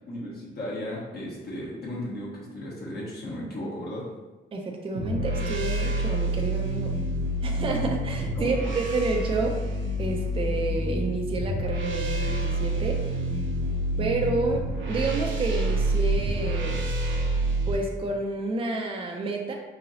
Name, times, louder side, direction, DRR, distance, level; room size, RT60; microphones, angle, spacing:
voice 1, 0.1-4.0 8.3-8.8, left 1 dB, 55° left, -4 dB, 1.2 m, -35 dB
voice 2, 4.5-6.9 7.4-13.0 14.0-14.6 14.9-16.9 17.7-19.5, right 2 dB, 25° right, 1 dB, 0.5 m, -29 dB
sound 1, 4.9-17.8, right 1 dB, 70° right, 0.7 m, -27 dB
3.7 x 3.0 x 2.7 m, 1.2 s
cardioid pair, 90°, 20 cm